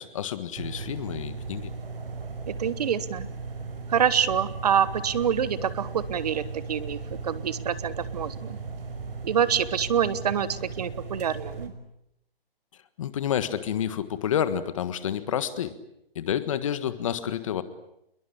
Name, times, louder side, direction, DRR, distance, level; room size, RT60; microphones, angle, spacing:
voice 1, 0.0-1.7 13.0-15.7 16.1-17.6, left 9 dB, 35° left, 12 dB, 1.6 m, -29 dB
sound 1, 0.6-11.7, right 4 dB, 70° right, 5.9 m, -37 dB
voice 2, 2.5-3.3 3.9-7.0 7.2-8.6 9.2-11.7, right 8 dB, 40° right, 16 dB, 1.3 m, -26 dB
28.0 x 22.0 x 8.7 m, 0.80 s
hypercardioid pair, 165°, 30 cm